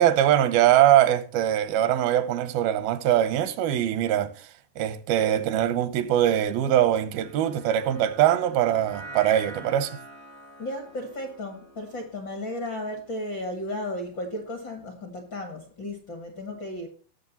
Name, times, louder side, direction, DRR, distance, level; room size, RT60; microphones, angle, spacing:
voice 1, 0.0-4.3 4.8-10.0, right 11 dB, 85° right, 2.7 m, -22 dB
sound 1, 7.1-13.5, right 1 dB, 65° right, 0.8 m, -45 dB
voice 2, 10.6-16.9, left 1 dB, 50° left, 1.4 m, -34 dB
18.5 x 6.5 x 4.1 m
omnidirectional pair, 4.2 m